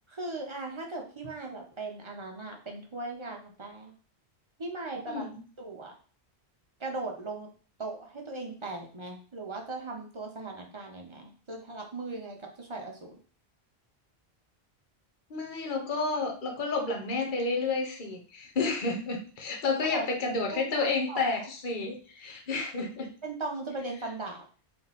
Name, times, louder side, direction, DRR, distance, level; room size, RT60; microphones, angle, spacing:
voice 1, 0.1-3.9 4.6-5.3 5.6-5.9 6.8-7.5 7.8-13.2 19.9-21.3 23.2-24.4, right 2 dB, 30° right, 1 dB, 0.7 m, -38 dB
voice 2, 5.1-5.4 15.3-23.1, left 3 dB, 50° left, 2 dB, 1.0 m, -30 dB
3.3 x 2.9 x 4.1 m, 0.39 s
omnidirectional pair, 1.1 m